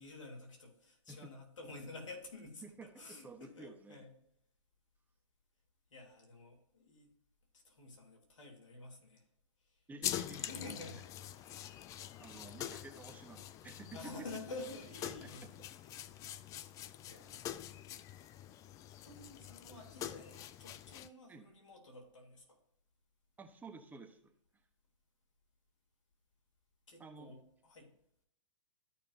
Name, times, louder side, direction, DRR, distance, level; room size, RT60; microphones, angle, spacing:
voice 1, 0.0-4.2 5.9-7.1 7.6-9.3 9.6-9.8 10.5-11.5 13.9-15.5 17.1-17.7 19.0-22.4 26.9-27.9, left 2 dB, 80° left, -1 dB, 3.3 m, -50 dB
voice 2, 2.6-4.0 9.9-10.6 12.2-14.0 15.0-15.3 21.3-21.4 23.4-24.3 27.0-27.3, right 3 dB, 10° right, 4 dB, 1.1 m, -52 dB
sound 1, 10.0-21.1, left 11 dB, 20° left, 0.4 m, -45 dB
13.5 x 5.2 x 2.7 m, 0.71 s
hypercardioid pair, 125°, 16 cm